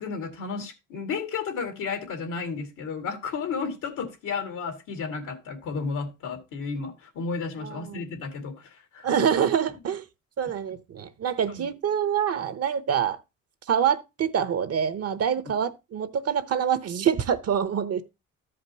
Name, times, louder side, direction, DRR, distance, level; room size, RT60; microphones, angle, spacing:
voice 1, 0.0-9.1 11.5-11.6, left 5 dB, 85° left, 2.2 m, -33 dB
voice 2, 7.6-8.1 9.0-10.0 10.4-13.2 13.7-18.0, right 8 dB, 55° right, 0.9 m, -26 dB
14.0 x 5.2 x 2.9 m
cardioid pair, 90°, 30 cm